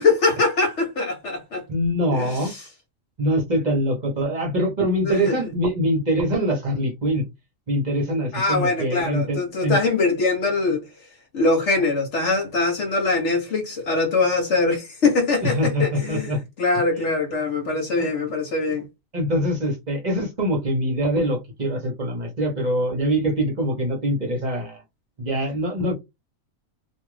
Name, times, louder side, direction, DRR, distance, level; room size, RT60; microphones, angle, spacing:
voice 1, 0.0-1.6 2.1-2.3 5.0-5.4 8.3-10.9 11.3-16.3 16.6-18.9, left 3 dB, 60° left, 1.0 m, -22 dB
voice 2, 1.7-2.5 3.2-7.3 7.7-9.8 15.4-16.4 17.0-17.1 18.0-18.1 19.1-24.8 25.2-25.9, equal, 40° right, 0.8 m, -24 dB
2.6 x 2.4 x 3.1 m
omnidirectional pair, 1.4 m